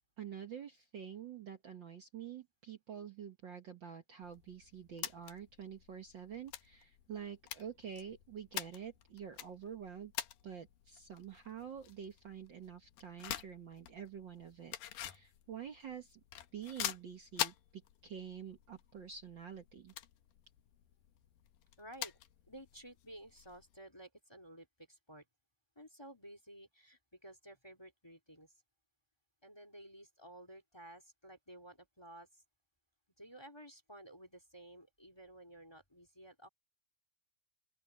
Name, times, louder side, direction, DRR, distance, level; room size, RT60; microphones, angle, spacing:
voice 1, 0.2-10.1 10.4-16.2 16.5-19.9, right 8 dB, 80° right, 1.0 m, -47 dB
sound 1, 4.2-23.8, left 12 dB, 70° left, 2.8 m, -47 dB
voice 2, 21.8-22.2 22.5-25.2 25.8-28.5 29.4-32.4 33.2-36.5, right 1 dB, 10° left, 2.3 m, -54 dB
open air
omnidirectional pair, 4.3 m